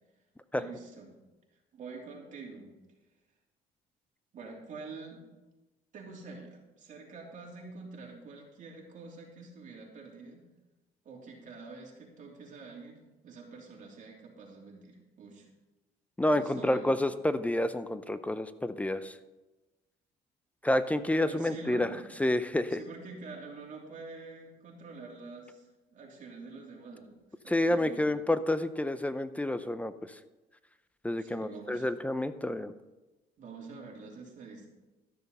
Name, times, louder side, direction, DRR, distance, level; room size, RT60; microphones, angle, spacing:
voice 1, 0.5-1.1 1.7-2.7 4.3-5.2 5.9-10.5 11.0-15.5 16.3-16.9 21.2-22.1 22.7-27.2 27.4-28.2 31.0-31.9 33.4-34.7, right 4 dB, 50° right, -1 dB, 3.1 m, -46 dB
voice 2, 16.2-19.2 20.6-21.9 22.2-22.8 27.5-29.9 31.0-32.7, left 1 dB, 10° left, 13 dB, 0.5 m, -29 dB
12.5 x 6.8 x 5.5 m, 1.1 s
cardioid pair, 110°, 17 cm